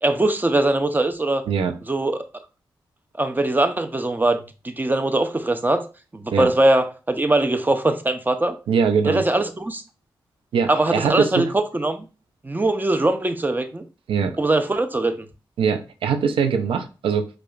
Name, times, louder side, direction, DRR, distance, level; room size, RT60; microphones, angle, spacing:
voice 1, 0.0-1.4 1.9-2.3 3.2-4.4 4.6-5.9 6.1-8.6 9.1-9.8 10.7-12.1 12.4-13.9 14.4-15.1, right 2 dB, 20° right, 0.6 m, -21 dB
voice 2, 8.7-9.2 10.5-11.5 14.1-14.4 15.6-17.3, right 6 dB, 90° right, 0.4 m, -22 dB
4.7 x 2.3 x 2.4 m
cardioid pair, 45°, 9 cm